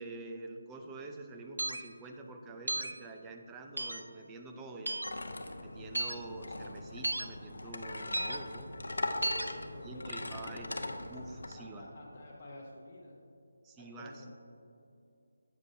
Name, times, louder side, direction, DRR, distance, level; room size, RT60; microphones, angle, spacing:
voice 1, 0.0-5.0 5.6-8.7 9.8-10.8 11.1-11.9 13.6-14.1, right 3 dB, 10° right, 3 dB, 0.4 m, -46 dB
sound 1, 1.6-1.8 2.7-2.9 3.8-4.0 4.9-5.1 5.9-6.1 7.0-7.2 8.1-8.4 9.2-9.5, right 1 dB, 85° right, 0.5 m, -33 dB
sound 2, 5.0-11.5, left 2 dB, 75° left, 0.6 m, -40 dB
voice 2, 9.5-11.1 11.5-13.1 13.8-14.3, left 1 dB, 30° left, -5 dB, 0.8 m, -50 dB
8.1 x 7.5 x 2.7 m, 2.6 s
figure-of-eight pair, 160°, 0 cm